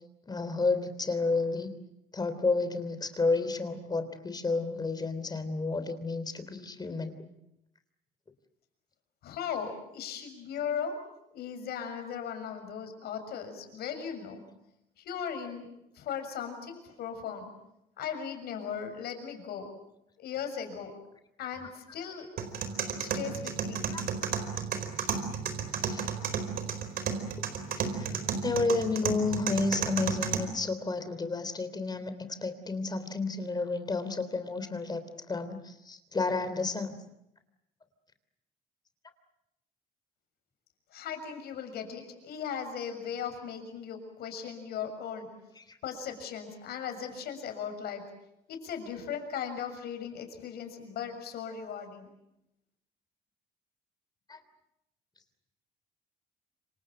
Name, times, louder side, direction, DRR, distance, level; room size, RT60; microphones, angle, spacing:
voice 1, 0.3-1.7 2.1-7.1 23.9-24.0 25.8-26.0 27.9-28.1 28.4-37.0 45.6-45.8 54.3-54.4, left 3 dB, 25° left, 11 dB, 3.3 m, -31 dB
voice 2, 9.2-11.0 11.3-14.4 15.0-15.7 15.9-17.5 18.0-19.7 20.2-20.9 21.4-22.3 23.0-23.8 40.9-45.3 45.8-48.0 48.5-52.1, left 7 dB, 70° left, 7 dB, 6.8 m, -37 dB
sound 1, 22.4-30.4, right 6 dB, 60° right, 4.5 m, -33 dB
28.0 x 25.0 x 7.7 m, 0.84 s
cardioid pair, 110°, 17 cm